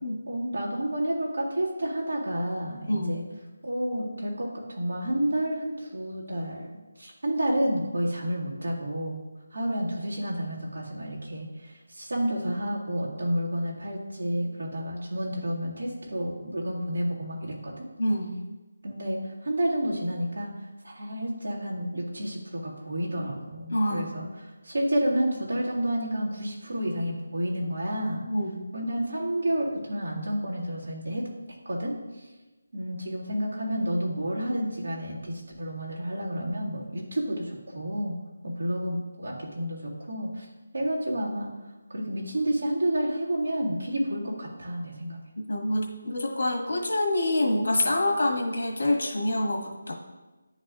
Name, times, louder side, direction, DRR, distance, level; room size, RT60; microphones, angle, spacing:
voice 1, 0.3-3.2 3.6-6.7 7.0-9.2 9.5-17.9 18.8-28.3 28.7-31.3 31.7-32.3 32.7-38.2 38.4-40.5 40.7-41.5 41.9-45.2, equal, 75° right, -5 dB, 1.9 m, -30 dB
voice 2, 2.9-3.2 18.0-18.4 23.7-24.1 28.3-28.6 45.5-49.9, left 1 dB, 70° left, 1 dB, 1.6 m, -26 dB
10.5 x 4.1 x 2.5 m, 1.2 s
figure-of-eight pair, 175°, 0 cm